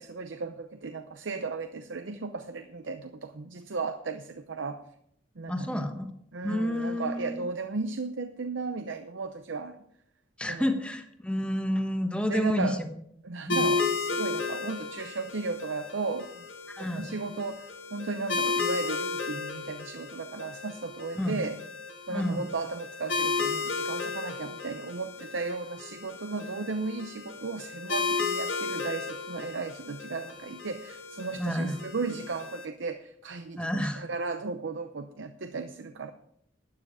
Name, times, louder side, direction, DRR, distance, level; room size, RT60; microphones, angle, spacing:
voice 1, 0.0-4.8 5.4-5.9 6.3-9.9 10.5-10.7 12.3-12.8 13.2-16.5 16.8-21.6 22.1-36.1, right 3 dB, 75° right, 8 dB, 0.7 m, -35 dB
voice 2, 5.5-6.1 6.4-7.4 10.4-12.7 13.5-13.7 16.7-17.0 21.2-21.4 22.1-22.4 31.4-31.7 33.5-34.1, left 1 dB, 5° left, 6 dB, 1.1 m, -29 dB
sound 1, 13.5-32.6, left 4 dB, 70° left, 1.7 m, -34 dB
12.5 x 9.5 x 4.9 m, 0.72 s
head